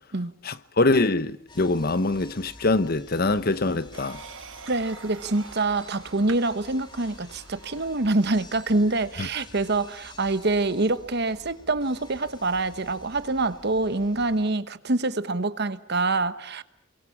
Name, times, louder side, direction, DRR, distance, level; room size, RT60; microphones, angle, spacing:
voice 1, 0.4-4.2 9.2-9.3, left 2 dB, 50° left, 1.0 m, -24 dB
sound 1, 1.5-14.5, left 2 dB, 25° left, 2.4 m, -49 dB
sound 2, 3.9-8.3, right 6 dB, 80° right, 1.9 m, -46 dB
voice 2, 4.7-16.6, right 2 dB, 55° right, 1.2 m, -25 dB
29.5 x 23.0 x 7.2 m
head